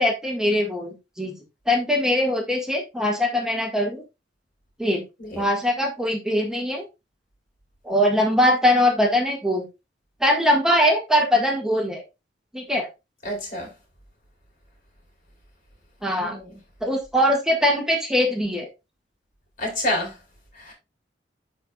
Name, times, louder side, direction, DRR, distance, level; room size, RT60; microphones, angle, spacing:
voice 1, 0.0-1.3 1.7-4.0 4.8-5.0 5.3-6.8 7.8-9.7 10.2-12.0 12.5-12.9 16.0-16.4 16.8-18.7, left 1 dB, 5° right, 1.6 m, -21 dB
voice 2, 13.2-13.7 16.2-16.5 19.6-20.1 20.7-20.8, left 1 dB, 50° left, 4.1 m, -28 dB
12.0 x 4.4 x 2.3 m
head